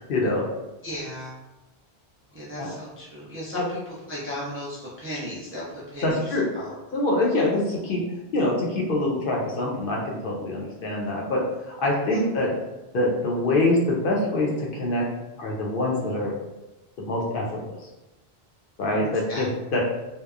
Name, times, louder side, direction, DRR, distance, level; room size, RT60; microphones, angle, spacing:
voice 1, 0.1-0.5 2.6-2.7 3.5-3.6 6.0-6.5 6.9-8.0 8.3-12.5 12.9-15.1 15.4-16.3 17.1-17.6 18.8-19.8, left 2 dB, 65° left, -2 dB, 0.7 m, -25 dB
voice 2, 0.8-1.3 2.3-3.8 4.1-6.3 6.5-6.8 12.1-12.2 19.0-19.5, equal, 20° right, -8 dB, 0.3 m, -35 dB
2.8 x 2.0 x 2.3 m, 1.0 s
omnidirectional pair, 1.1 m